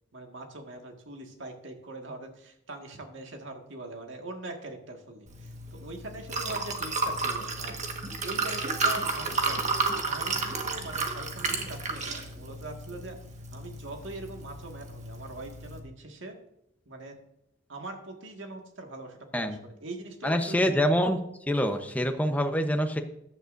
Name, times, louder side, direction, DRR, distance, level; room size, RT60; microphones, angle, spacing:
voice 1, 0.1-7.8 8.2-9.6 9.9-13.2 13.5-16.4 16.9-17.2 17.7-20.6, right 2 dB, 70° right, 3 dB, 1.9 m, -42 dB
Liquid, 5.3-15.8, right 3 dB, 35° right, 1.5 m, -32 dB
voice 2, 20.2-21.2 21.5-23.0, equal, 10° left, 6 dB, 0.9 m, -25 dB
15.0 x 11.0 x 2.6 m, 0.80 s
head